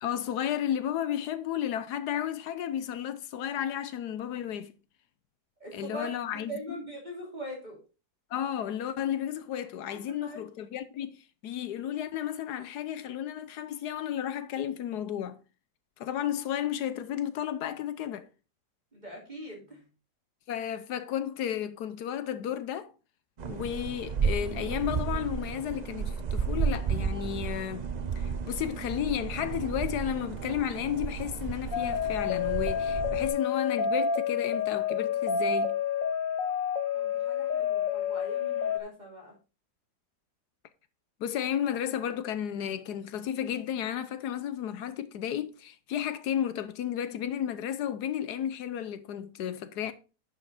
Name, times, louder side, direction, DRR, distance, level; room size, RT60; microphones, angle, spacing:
voice 1, 0.0-4.7 5.7-6.5 8.3-11.1 11.4-15.4 16.0-18.3 20.5-22.9 23.5-27.9 28.2-35.7 41.2-49.9, left 10 dB, 80° left, 1.2 m, -33 dB
voice 2, 5.6-7.8 10.2-10.4 18.9-19.9 36.9-39.3, equal, 25° right, 3.0 m, -42 dB
sound 1, 23.4-33.3, right 6 dB, 60° right, 0.4 m, -33 dB
sound 2, 31.7-38.8, left 7 dB, 55° left, 1.4 m, -29 dB
11.0 x 5.8 x 4.0 m
omnidirectional pair, 1.8 m